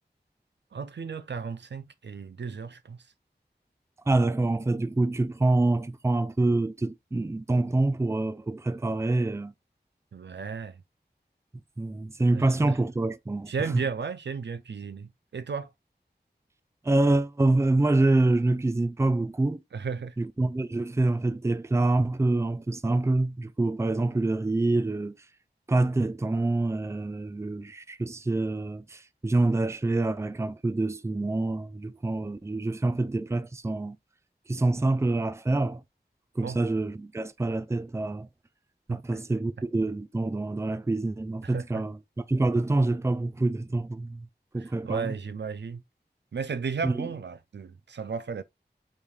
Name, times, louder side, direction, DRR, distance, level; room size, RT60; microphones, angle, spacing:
voice 1, 0.7-3.0 10.1-10.8 12.3-12.7 13.5-15.7 19.7-20.1 36.4-36.6 38.9-39.2 41.4-41.8 44.6-45.8 46.3-48.4, right 5 dB, 85° right, 0.4 m, -34 dB
voice 2, 4.1-9.5 11.8-13.9 16.8-19.6 20.2-25.2 25.7-34.0 34.5-35.8 36.4-38.3 38.9-42.0 42.3-44.3 44.5-45.2 46.8-47.1, right 2 dB, 15° right, 0.4 m, -26 dB
7.1 x 3.2 x 2.3 m
wide cardioid pair, 45°, 18 cm